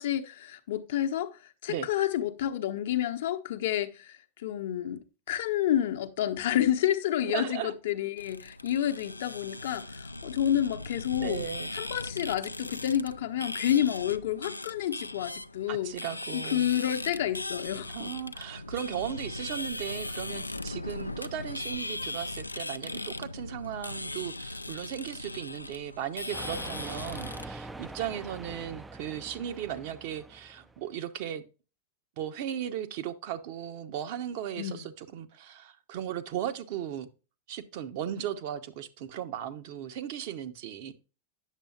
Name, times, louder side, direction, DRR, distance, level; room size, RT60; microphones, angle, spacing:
voice 1, 0.0-11.4 11.7-15.9 16.3-18.1 34.6-34.8, left 11 dB, 55° left, 0.7 m, -29 dB
voice 2, 7.2-7.7 11.2-11.7 15.7-16.7 17.9-31.4 32.2-37.1 37.5-40.9, right 10 dB, 50° right, 0.7 m, -36 dB
sound 1, 8.2-27.5, left 2 dB, 85° left, 0.3 m, -39 dB
sound 2, 26.3-30.9, right 3 dB, 10° right, 0.3 m, -43 dB
9.1 x 6.9 x 2.3 m
figure-of-eight pair, 90°, 0 cm